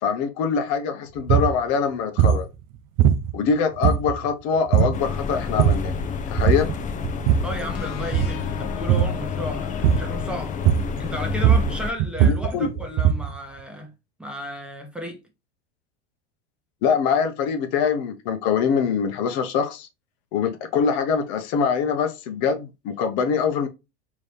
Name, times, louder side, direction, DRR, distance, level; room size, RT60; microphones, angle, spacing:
voice 1, 0.0-2.5 3.3-5.9 6.3-6.7 12.2-12.7 16.8-19.9 20.3-23.7, left 6 dB, 55° left, 0.9 m, -23 dB
sound 1, 1.2-1.6 2.2-2.5 3.0-3.5 3.8-4.3 4.7-5.0 5.4-5.9 6.4-6.8 7.0-7.6 8.0-8.4 8.9-9.2 9.8-10.2 10.6-11.0 11.3-13.4, right 9 dB, 50° right, 0.6 m, -20 dB
sound 2, 4.9-11.9, left 6 dB, 25° left, 0.5 m, -29 dB
voice 2, 7.4-10.5 11.0-13.9 14.2-15.2, equal, 5° right, 1.0 m, -33 dB
sound 3, 7.7-11.3, left 12 dB, 85° left, 0.7 m, -39 dB
3.9 x 3.1 x 3.3 m
hypercardioid pair, 105°, 34 cm